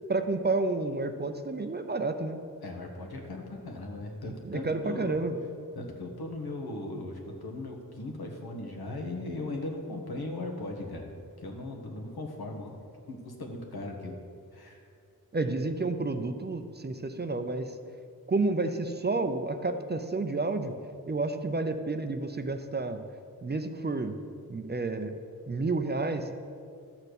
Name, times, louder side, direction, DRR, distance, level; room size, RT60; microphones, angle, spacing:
voice 1, 0.1-2.4 4.4-5.4 15.3-17.7 18.3-20.8 21.1-23.0 23.4-24.1 24.5-25.2 25.5-26.3, right 3 dB, 25° right, 8 dB, 0.5 m, -30 dB
voice 2, 2.6-5.2 5.7-11.1 11.4-12.7 13.1-14.2 14.5-14.8, left 2 dB, 80° left, 2 dB, 1.6 m, -38 dB
12.0 x 4.4 x 8.2 m, 2.3 s
wide cardioid pair, 120°, 37 cm